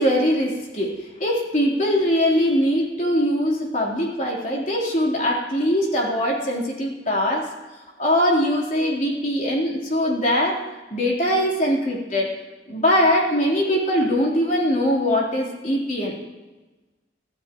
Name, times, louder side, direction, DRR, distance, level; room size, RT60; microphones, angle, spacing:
voice 1, 0.0-7.5 8.0-10.6 10.9-12.3 12.7-16.2, equal, 45° left, -3 dB, 3.8 m, -22 dB
24.0 x 15.0 x 3.1 m, 1.1 s
head